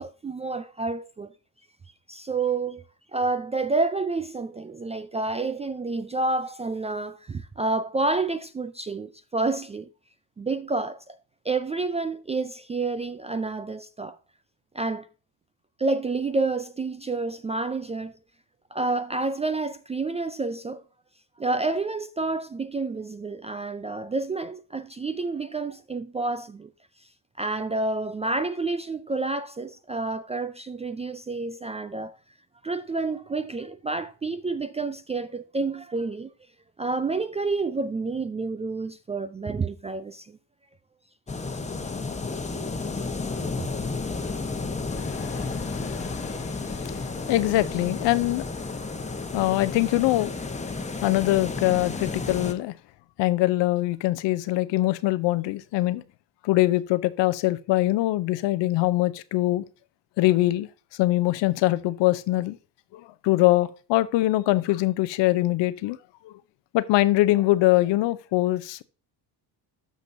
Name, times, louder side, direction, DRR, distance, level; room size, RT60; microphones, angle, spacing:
voice 1, 0.0-1.3 2.1-2.8 3.1-9.9 10.4-11.2 11.5-14.2 14.7-15.1 15.8-18.1 18.7-20.8 21.4-26.7 27.4-32.2 32.6-36.3 36.8-40.4, right 3 dB, 15° right, 0.3 m, -29 dB
sound 1, 41.3-52.5, left 3 dB, 15° left, 1.1 m, -32 dB
voice 2, 44.9-48.5 49.3-50.3 51.0-52.7 53.2-56.0 56.4-59.6 60.2-60.7 61.0-62.6 62.9-66.0 66.2-66.3 66.7-68.8, left 17 dB, 65° left, 0.7 m, -23 dB
13.0 x 5.2 x 2.7 m
supercardioid pair, 80°, 46 cm